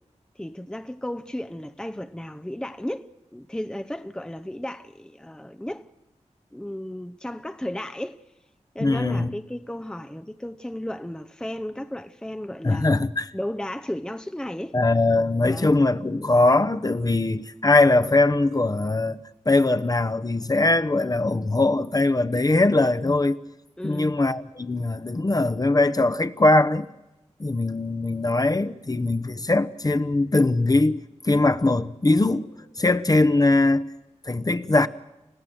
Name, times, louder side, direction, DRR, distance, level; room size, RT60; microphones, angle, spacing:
voice 1, 0.4-5.9 6.5-8.2 8.7-12.9 13.3-14.8 15.4-15.8 23.8-24.2, left 1 dB, 5° left, 0.7 m, -34 dB
voice 2, 8.8-9.3 12.6-13.3 14.7-19.2 19.5-23.4 23.8-26.9 27.4-31.0 31.2-32.5 32.8-33.8 34.3-34.9, left 2 dB, 30° left, 1.0 m, -21 dB
30.0 x 15.5 x 7.8 m
wide cardioid pair, 60°, 12 cm